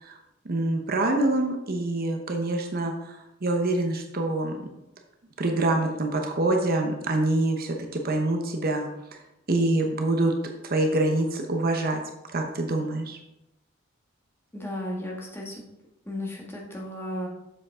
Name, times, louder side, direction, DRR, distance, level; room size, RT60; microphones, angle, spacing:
voice 1, 0.4-4.7 5.4-8.9 9.1-9.2 9.5-10.3 10.6-12.0 12.3-13.2, right 2 dB, 50° right, 3 dB, 0.9 m, -25 dB
voice 2, 14.5-15.6 16.1-17.3, left 1 dB, 10° left, -3 dB, 1.8 m, -34 dB
7.6 x 7.2 x 3.7 m, 0.91 s
head